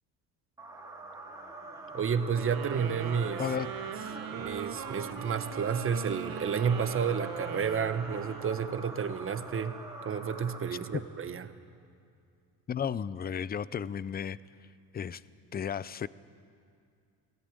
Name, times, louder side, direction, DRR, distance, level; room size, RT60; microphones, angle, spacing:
sound 1, 0.6-11.3, right 2 dB, 10° right, 3.5 m, -44 dB
voice 1, 1.9-3.4 4.3-9.8 10.0-11.5, right 6 dB, 35° right, 10 dB, 1.2 m, -31 dB
sound 2, 2.3-8.9, right 9 dB, 65° right, 1.5 m, -41 dB
sound 3, 3.0-5.6, right 11 dB, 80° right, 1.5 m, -49 dB
voice 2, 12.7-14.4 14.9-15.2 15.5-16.1, left 8 dB, 25° left, 19 dB, 0.5 m, -33 dB
18.5 x 17.0 x 8.9 m, 2.4 s
cardioid pair, 105°, 38 cm